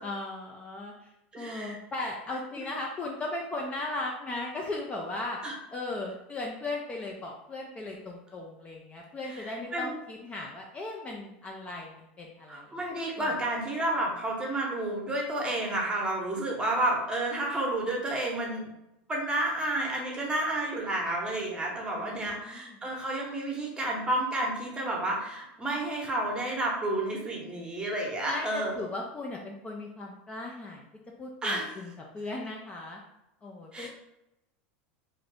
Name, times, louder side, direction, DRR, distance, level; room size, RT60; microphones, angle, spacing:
voice 1, 0.0-5.4 5.7-12.8 13.2-13.3 21.8-22.8 28.3-30.9 31.2-33.0 33.4-33.9, left 2 dB, 20° left, -1 dB, 0.4 m, -37 dB
voice 2, 1.3-1.8 5.4-5.5 9.7-9.9 12.5-18.6 19.1-28.8 31.4-31.7 33.7-33.9, right 1 dB, 15° right, -1 dB, 0.9 m, -30 dB
2.7 x 2.6 x 3.3 m, 0.88 s
supercardioid pair, 115°, 6 cm